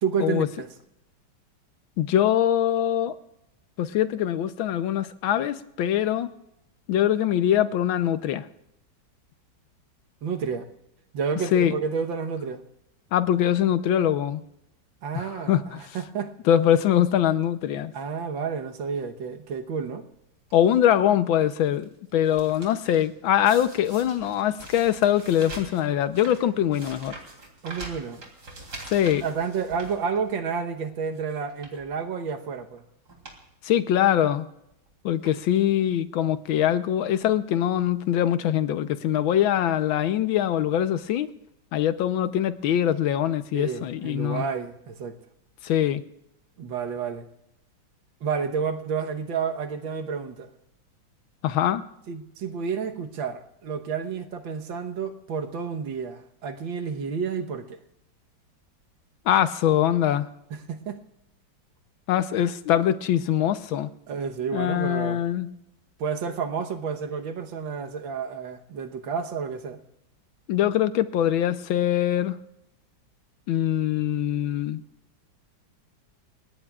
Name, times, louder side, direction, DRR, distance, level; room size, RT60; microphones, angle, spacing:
voice 1, 0.0-0.7 10.2-10.7 11.1-12.6 15.0-16.3 17.9-20.0 27.6-28.2 29.2-32.8 43.5-45.2 46.6-47.3 48.2-50.5 52.1-57.8 60.5-61.0 64.1-65.2 66.0-69.8, right 6 dB, 75° right, 7 dB, 1.9 m, -30 dB
voice 2, 2.0-3.2 3.8-6.3 6.9-8.5 11.5-11.7 13.1-14.4 15.2-15.8 16.5-17.9 20.5-27.2 28.9-29.2 33.6-34.5 35.1-41.3 41.7-44.5 45.6-46.0 51.4-51.8 59.3-60.3 62.1-63.9 64.5-65.5 70.5-72.4 73.5-74.8, left 10 dB, 80° left, 12 dB, 1.6 m, -23 dB
sound 1, 20.5-20.9 21.5-21.8 22.1-23.1 23.5-30.6 30.9-31.1 31.5-31.9 32.7-32.8 33.1-33.4 33.7-33.8 34.7-34.9 35.2-35.7 36.5-36.6 36.8-36.9, right 2 dB, 55° right, 3.8 m, -44 dB
30.0 x 17.5 x 2.4 m, 0.85 s
omnidirectional pair, 2.1 m